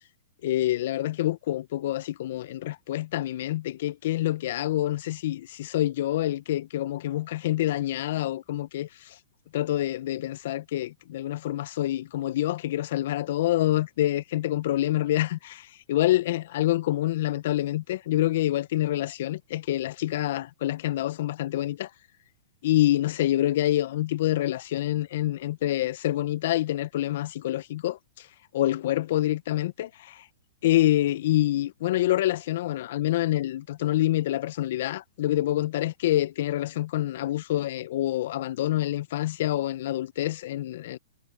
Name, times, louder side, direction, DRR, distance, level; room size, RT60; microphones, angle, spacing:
voice 1, 0.4-9.1 9.5-21.9 22.6-28.3 28.5-30.2 30.6-41.0, left 14 dB, 60° left, 1.5 m, -27 dB
hypercardioid pair, 115°, 0 cm